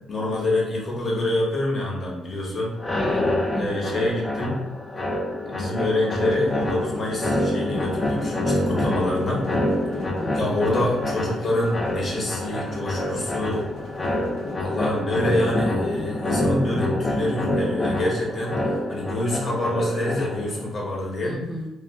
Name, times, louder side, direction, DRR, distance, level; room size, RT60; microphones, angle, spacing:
voice 1, 0.1-2.7 3.6-4.6 5.4-9.4 10.3-13.7 14.6-21.3, left 1 dB, 40° left, -4 dB, 1.0 m, -26 dB
sound 1, 2.8-20.6, left 1 dB, 25° left, 0.4 m, -26 dB
voice 2, 2.9-4.1 10.2-10.6 21.2-21.7, right 1 dB, 20° right, -4 dB, 0.6 m, -34 dB
sound 2, 6.5-14.5, left 1 dB, 80° left, 0.7 m, -41 dB
2.3 x 2.0 x 3.4 m, 0.95 s
cardioid pair, 90°, 0 cm